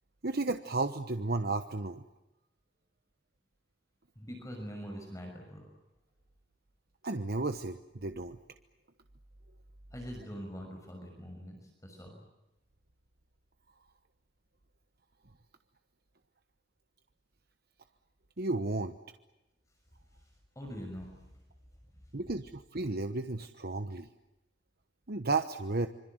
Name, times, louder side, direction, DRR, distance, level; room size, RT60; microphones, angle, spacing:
voice 1, 0.2-2.0 7.0-8.4 18.4-18.9 22.1-24.1 25.1-25.9, right 3 dB, 55° right, 8 dB, 1.1 m, -33 dB
voice 2, 4.2-5.6 9.9-12.2 20.6-21.1, equal, 20° left, 2 dB, 6.0 m, -43 dB
26.5 x 25.5 x 7.9 m, 0.97 s
head